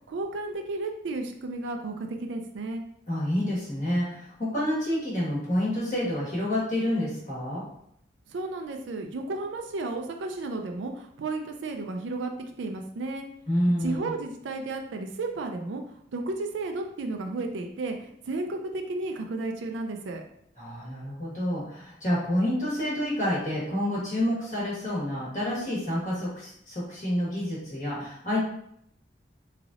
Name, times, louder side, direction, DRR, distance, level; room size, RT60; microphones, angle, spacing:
voice 1, 0.1-2.8 8.3-12.3 12.6-13.3 13.8-20.2, right 3 dB, 85° right, 4 dB, 0.4 m, -33 dB
voice 2, 3.1-7.6 13.5-14.1 20.6-28.4, left 1 dB, 40° left, -7 dB, 1.3 m, -28 dB
3.7 x 3.2 x 2.4 m, 0.71 s
head